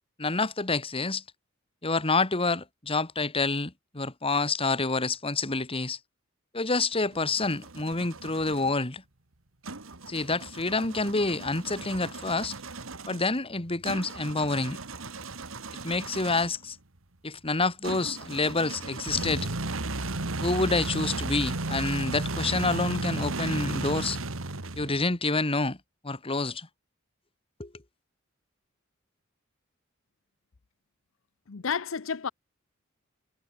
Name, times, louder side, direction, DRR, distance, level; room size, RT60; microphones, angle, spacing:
voice 1, 0.2-1.2 1.8-6.0 6.5-9.0 10.1-12.5 13.1-14.8 15.8-16.8 17.2-19.5 20.4-24.2 24.8-25.8 26.0-26.7 27.6-27.7, left 3 dB, 30° left, 1.9 m, -28 dB
sound 1, 6.9-8.7 9.6-16.6 17.8-25.1, right 2 dB, 80° right, 2.3 m, -35 dB
voice 2, 31.5-32.3, left 6 dB, 75° left, 0.7 m, -31 dB
head